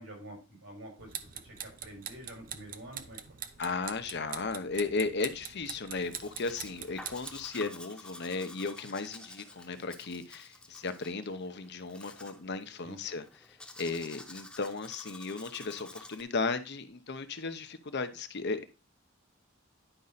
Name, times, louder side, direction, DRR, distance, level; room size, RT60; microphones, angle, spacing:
voice 1, 0.0-3.4 7.6-7.7 12.8-13.0, right 1 dB, 80° right, 4.9 m, -48 dB
sound 1, 1.0-7.5, right 9 dB, 45° right, 0.7 m, -44 dB
voice 2, 3.6-18.6, left 4 dB, 55° left, 0.8 m, -35 dB
Domestic sounds home sounds, 6.0-16.2, left 2 dB, 5° left, 0.9 m, -50 dB
10.0 x 5.4 x 4.0 m
head